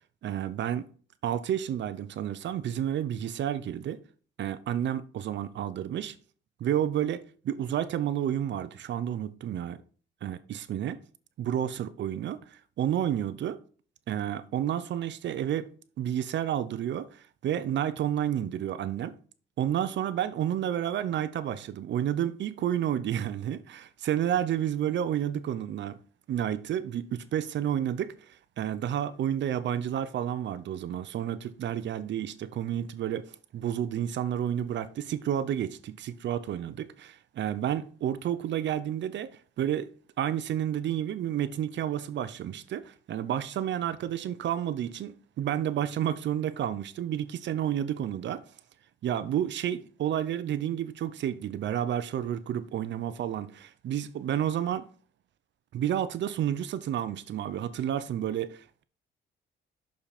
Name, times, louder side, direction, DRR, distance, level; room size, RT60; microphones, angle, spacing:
voice 1, 0.2-0.9 1.2-4.0 4.4-6.2 6.6-9.8 10.2-11.0 11.4-12.4 12.8-13.6 14.1-15.7 16.0-19.2 19.6-26.0 26.3-28.1 28.6-39.3 39.6-39.9 40.2-48.4 49.0-54.9 55.7-58.8, right 10 dB, 65° right, 0.7 m, -30 dB
6.5 x 5.7 x 4.2 m
cardioid pair, 90°, 20 cm